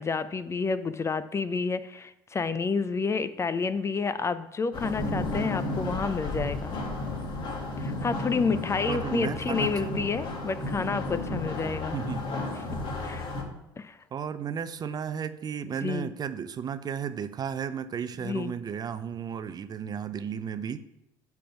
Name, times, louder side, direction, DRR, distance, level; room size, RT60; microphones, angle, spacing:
voice 1, 0.0-6.7 7.8-12.0 13.0-13.3 13.8-14.0 15.8-16.1 18.2-18.5, left 4 dB, 25° left, 14 dB, 0.5 m, -29 dB
sound 1, 4.7-13.4, left 2 dB, 45° left, 1.9 m, -33 dB
voice 2, 8.9-9.9 11.9-12.3 14.1-20.8, right 7 dB, 35° right, 12 dB, 0.5 m, -34 dB
10.0 x 3.6 x 5.8 m, 0.87 s
hypercardioid pair, 70°, 11 cm